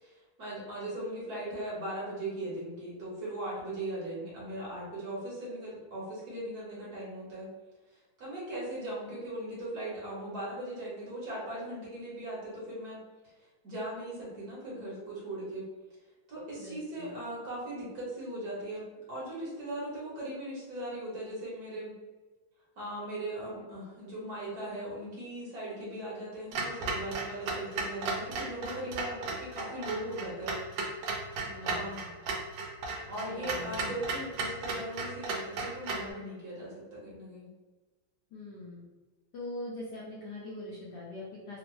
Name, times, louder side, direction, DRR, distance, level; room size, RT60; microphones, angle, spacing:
voice 1, 0.0-7.5 7.9-13.0 13.6-15.7 16.3-21.9 22.8-30.5 31.6-32.0 32.9-37.5, right 1 dB, 55° right, -7 dB, 1.3 m, -39 dB
voice 2, 16.6-17.1 31.5-32.1 33.3-33.9 38.3-38.8 39.3-41.6, left 1 dB, 70° left, -6 dB, 1.1 m, -42 dB
Clock, 26.5-36.1, right 3 dB, 70° right, 1.3 m, -35 dB
3.5 x 2.0 x 3.1 m, 1.2 s
omnidirectional pair, 2.3 m